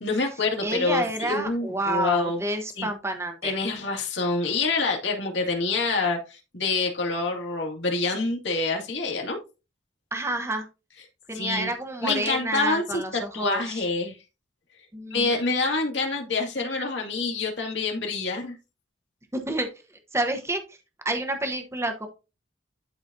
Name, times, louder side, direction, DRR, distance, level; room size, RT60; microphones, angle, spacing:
voice 1, 0.0-2.4 2.8-2.9 3.4-9.4 11.3-11.7 12.0-14.2 15.1-18.6, left 3 dB, 65° left, 1 dB, 2.1 m, -27 dB
voice 2, 0.6-3.5 10.1-10.7 11.3-13.8 14.9-15.5 19.3-19.7 20.1-20.8 21.0-22.1, right 1 dB, 15° right, 5 dB, 1.0 m, -29 dB
11.5 x 4.0 x 2.7 m, 0.29 s
head